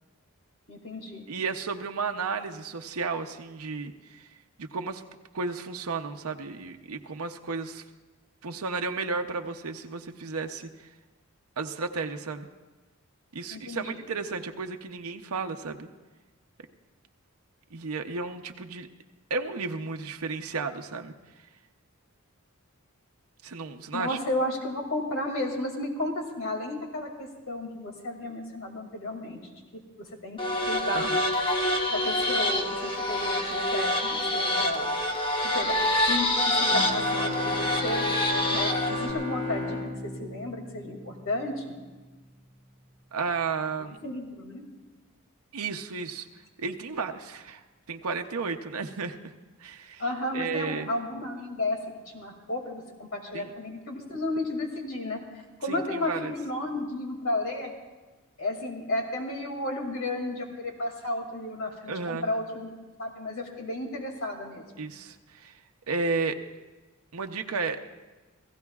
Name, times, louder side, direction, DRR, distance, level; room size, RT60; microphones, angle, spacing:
voice 1, 0.7-1.3 13.5-14.0 23.9-29.4 29.7-30.4 30.7-31.1 31.9-34.9 35.4-35.8 36.0-38.1 38.5-41.7 44.0-44.7 50.0-51.8 52.1-55.2 55.6-57.7 58.4-62.7 63.0-64.8, left 1 dB, 60° left, 2 dB, 2.4 m, -33 dB
voice 2, 1.3-4.3 4.6-5.0 5.3-7.8 8.4-10.9 11.6-12.5 13.3-15.9 17.7-18.9 19.3-21.1 23.4-24.2 30.9-31.2 43.1-44.0 45.5-46.3 46.6-47.6 47.9-49.3 49.6-50.0 50.3-50.9 53.3-53.5 55.7-56.3 61.9-62.3 64.8-65.6 65.9-66.4 67.1-67.8, right 4 dB, 80° right, 5 dB, 0.7 m, -33 dB
sound 1, 30.4-39.1, left 1 dB, 25° left, 1.2 m, -26 dB
sound 2, 36.7-41.4, left 2 dB, 40° left, 3.3 m, -34 dB
29.5 x 15.5 x 2.4 m, 1.2 s
head